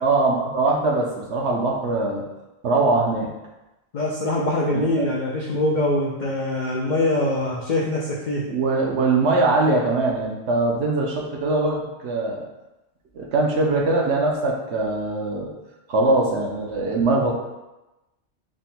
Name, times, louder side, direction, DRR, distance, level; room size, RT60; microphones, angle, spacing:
voice 1, 0.0-2.2 2.6-3.3 5.0-5.1 8.5-11.8 12.0-12.4 13.1-15.5 15.9-17.3, right 2 dB, 65° right, -1 dB, 0.8 m, -21 dB
voice 2, 3.9-8.4, left 1 dB, 70° left, -4 dB, 0.4 m, -23 dB
3.6 x 2.1 x 4.1 m, 1.0 s
omnidirectional pair, 1.4 m